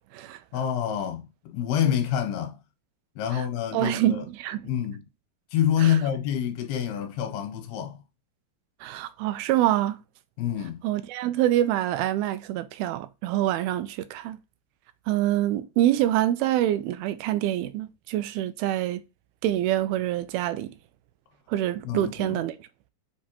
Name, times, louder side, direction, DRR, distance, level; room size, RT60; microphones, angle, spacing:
voice 1, 0.5-2.6 3.2-4.2 4.6-5.0 5.5-8.0 10.4-10.8 21.8-22.4, left 9 dB, 90° left, 2.8 m, -27 dB
voice 2, 3.7-4.7 5.8-6.0 8.8-10.0 10.8-14.4 15.1-19.0 19.4-20.7 21.5-22.7, right 13 dB, 85° right, 2.4 m, -26 dB
7.3 x 2.5 x 2.9 m
omnidirectional pair, 4.3 m